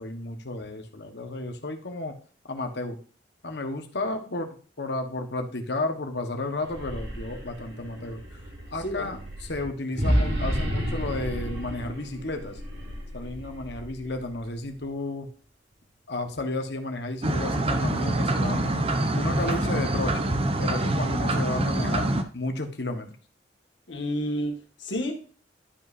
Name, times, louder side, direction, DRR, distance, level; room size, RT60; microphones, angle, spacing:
voice 1, 0.0-2.1 2.5-3.0 3.4-8.4 8.7-12.6 13.1-15.3 16.1-18.8 19.1-20.3 20.6-23.1, left 2 dB, 65° left, 5 dB, 1.4 m, -32 dB
sound 1, 6.5-14.7, equal, 70° right, 2.9 m, -31 dB
sound 2, 17.2-22.2, right 1 dB, 35° right, 0.8 m, -25 dB
voice 2, 23.9-25.1, equal, 90° left, 2 dB, 2.0 m, -30 dB
12.0 x 5.4 x 2.7 m, 0.41 s
head